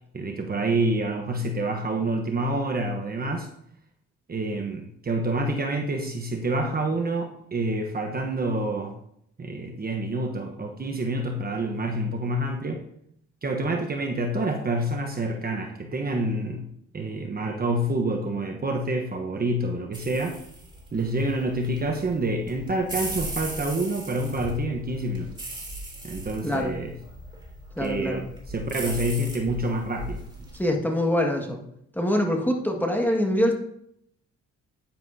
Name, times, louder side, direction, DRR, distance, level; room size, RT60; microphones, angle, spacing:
voice 1, 0.1-3.5 4.3-8.9 9.4-12.8 13.4-16.6 16.9-20.3 20.9-25.3 26.0-26.9 27.8-30.2, right 1 dB, 30° right, 3 dB, 1.1 m, -27 dB
sound 1, 19.9-30.6, right 1 dB, 15° right, 3.4 m, -38 dB
voice 2, 27.8-28.2 30.5-31.6 31.9-33.5, left 1 dB, 5° left, 1 dB, 1.8 m, -24 dB
10.0 x 9.8 x 2.8 m, 0.72 s
cardioid pair, 90°, 30 cm